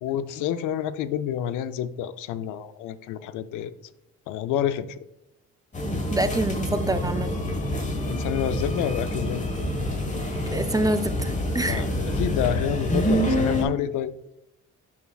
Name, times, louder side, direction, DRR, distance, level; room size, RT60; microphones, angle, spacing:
voice 1, 0.0-3.7 4.3-4.9 8.1-9.4 11.6-14.1, left 10 dB, 90° left, 14 dB, 0.5 m, -28 dB
sound 1, 5.7-13.6, left 1 dB, 25° left, 1.2 m, -27 dB
voice 2, 6.1-7.3 10.5-11.8, right 2 dB, 15° right, 10 dB, 0.3 m, -26 dB
7.0 x 5.9 x 2.3 m, 0.84 s
cardioid pair, 90°, 30 cm